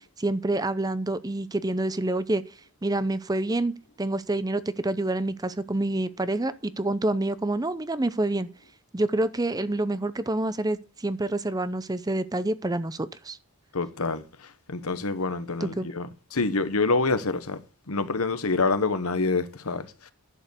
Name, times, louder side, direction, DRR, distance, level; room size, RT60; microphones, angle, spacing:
voice 1, 0.2-2.4 2.8-3.7 4.0-8.5 8.9-13.4 15.6-15.9, right 2 dB, 15° right, 0.6 m, -27 dB
voice 2, 13.7-17.6 17.9-20.1, left 3 dB, 75° left, 1.1 m, -27 dB
11.0 x 7.0 x 6.7 m
head